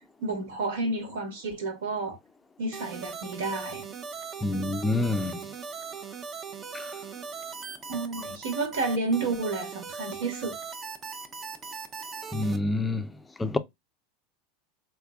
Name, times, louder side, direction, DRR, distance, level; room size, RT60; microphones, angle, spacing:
voice 1, 0.2-2.2 2.6-3.8 7.9-10.6, right 3 dB, 75° right, 1.6 m, -31 dB
sound 1, 2.7-12.6, right 5 dB, 30° right, 0.6 m, -39 dB
voice 2, 4.4-5.4 6.7-6.8 12.3-13.0 13.4-13.6, left 2 dB, 15° left, 0.4 m, -27 dB
3.3 x 2.9 x 2.3 m
hypercardioid pair, 100°, 0 cm